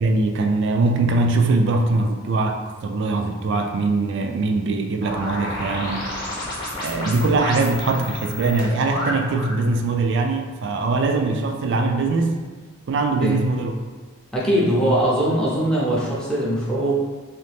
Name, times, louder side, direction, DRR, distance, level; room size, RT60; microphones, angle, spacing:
voice 1, 0.0-6.1 6.8-12.4 12.9-13.7, right 3 dB, 55° right, 4 dB, 0.3 m, -22 dB
sound 1, 5.0-9.6, left 1 dB, 20° left, 0.9 m, -31 dB
voice 2, 14.3-16.9, right 1 dB, 5° left, -7 dB, 0.5 m, -21 dB
3.1 x 2.7 x 3.4 m, 1.5 s
head